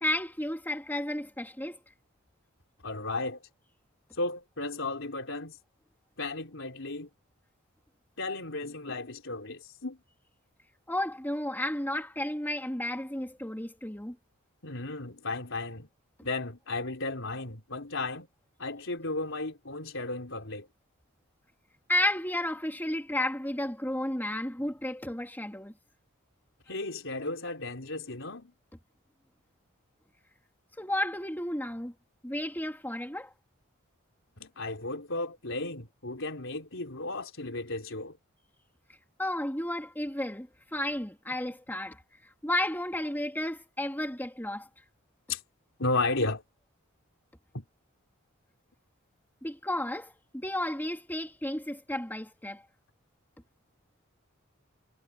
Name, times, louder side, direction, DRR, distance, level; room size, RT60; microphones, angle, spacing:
voice 1, 0.0-1.8 10.9-14.2 21.9-25.7 30.8-31.9 32.2-33.3 39.2-42.0 42.4-44.7 49.4-52.6, left 1 dB, 10° left, 2.7 m, -32 dB
voice 2, 2.8-3.5 4.1-5.6 6.2-7.1 8.2-10.0 14.6-15.9 16.2-18.3 18.6-20.7 26.7-28.5 34.4-38.2 45.3-45.4 45.8-46.4 47.5-47.7, left 2 dB, 65° left, 4.4 m, -34 dB
head